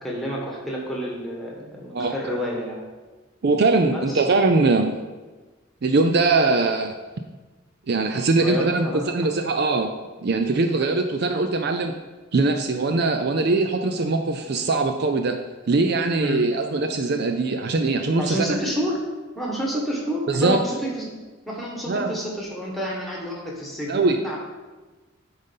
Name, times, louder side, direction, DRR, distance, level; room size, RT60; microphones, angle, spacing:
voice 1, 0.0-2.8 3.9-4.2 8.4-9.0 16.2-16.5 18.2-19.0 19.3-21.1 21.4-24.4, equal, ahead, -3 dB, 1.6 m, -29 dB
voice 2, 3.4-4.9 5.8-6.9 7.9-9.9 10.2-11.9 12.3-15.4 15.7-18.6 20.3-20.6 21.9-22.1 23.9-24.2, right 3 dB, 50° right, 5 dB, 0.4 m, -21 dB
8.8 x 4.0 x 5.5 m, 1.2 s
head